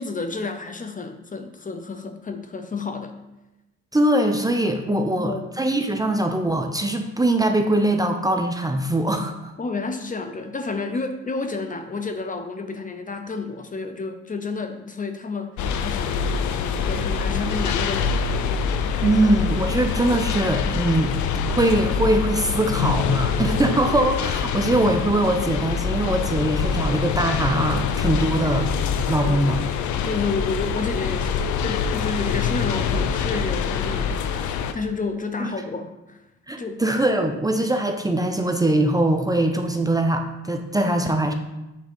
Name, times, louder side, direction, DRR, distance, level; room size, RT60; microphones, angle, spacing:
voice 1, 0.0-3.2 4.9-5.6 9.6-19.8 29.2-29.7 30.0-36.2 36.6-36.8, left 4 dB, 25° left, 7 dB, 0.6 m, -31 dB
voice 2, 3.9-9.5 19.0-21.1 21.5-28.7 29.1-29.6 35.4-35.5 36.5-41.3, right 1 dB, 10° right, 4 dB, 0.6 m, -22 dB
sound 1, 15.6-34.7, left 6 dB, 70° left, 0.6 m, -25 dB
7.4 x 3.5 x 5.3 m, 0.96 s
cardioid pair, 90°, 30 cm